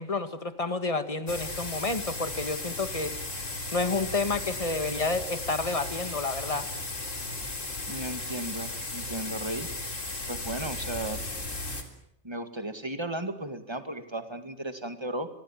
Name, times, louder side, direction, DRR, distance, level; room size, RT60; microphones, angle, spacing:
voice 1, 0.0-3.1 3.7-6.7, left 3 dB, 25° left, 10 dB, 1.8 m, -30 dB
sound 1, 1.3-11.8, left 2 dB, 75° left, 3.9 m, -35 dB
voice 2, 7.9-9.7 10.3-11.2 12.2-15.3, right 1 dB, 20° right, 9 dB, 2.2 m, -35 dB
29.0 x 23.0 x 7.6 m, 0.77 s
omnidirectional pair, 1.3 m